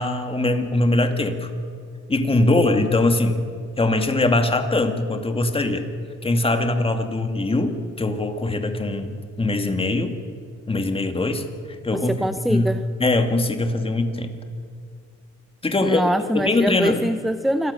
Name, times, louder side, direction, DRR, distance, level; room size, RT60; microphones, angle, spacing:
voice 1, 0.0-1.5 2.1-3.4 3.8-5.9 6.2-10.2 10.7-11.5 11.8-12.2 12.5-14.3 15.6-16.0 16.3-17.0, left 2 dB, 20° left, 6 dB, 2.4 m, -22 dB
voice 2, 11.9-12.8 15.8-17.7, equal, ahead, 11 dB, 0.7 m, -23 dB
27.5 x 22.0 x 7.0 m, 2.2 s
cardioid pair, 130°, 30 cm